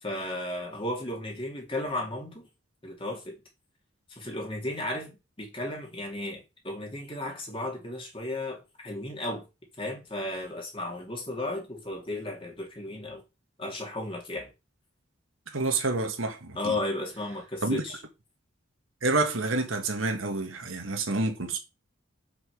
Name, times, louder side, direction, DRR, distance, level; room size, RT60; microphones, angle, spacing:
voice 1, 0.0-2.5 2.8-3.4 4.1-9.4 9.8-13.2 13.6-14.5 16.5-18.0, left 1 dB, 25° left, 2.7 m, -34 dB
voice 2, 15.5-16.7 17.6-17.8 19.0-21.6, right 3 dB, 85° right, 1.9 m, -28 dB
5.9 x 5.4 x 6.4 m
head